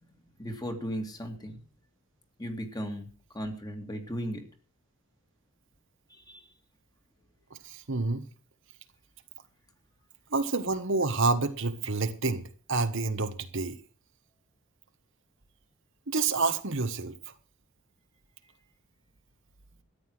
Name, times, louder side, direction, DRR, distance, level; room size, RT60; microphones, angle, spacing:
voice 1, 0.4-1.6 2.4-3.1 3.3-4.4 6.1-6.4 18.4-18.5, equal, 20° left, 2.2 m, -36 dB
voice 2, 7.6-8.2 10.3-13.8 16.1-17.1, right 3 dB, 60° right, 1.3 m, -28 dB
13.5 x 9.6 x 6.3 m
head